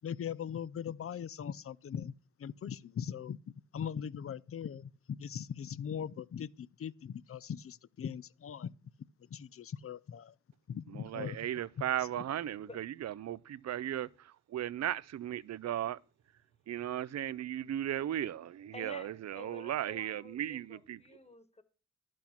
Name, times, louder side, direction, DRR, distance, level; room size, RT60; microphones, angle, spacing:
voice 1, 0.0-2.1 2.4-3.4 3.7-8.7 9.3-10.4 10.7-11.6 12.1-12.2, left 8 dB, 50° left, 0.6 m, -40 dB
voice 2, 10.9-16.0 16.7-21.0, right 11 dB, 60° right, 0.5 m, -36 dB
voice 3, 12.5-12.9 18.7-21.6, left 3 dB, 20° left, 1.5 m, -51 dB
11.5 x 6.2 x 5.9 m
cardioid pair, 55°, 30 cm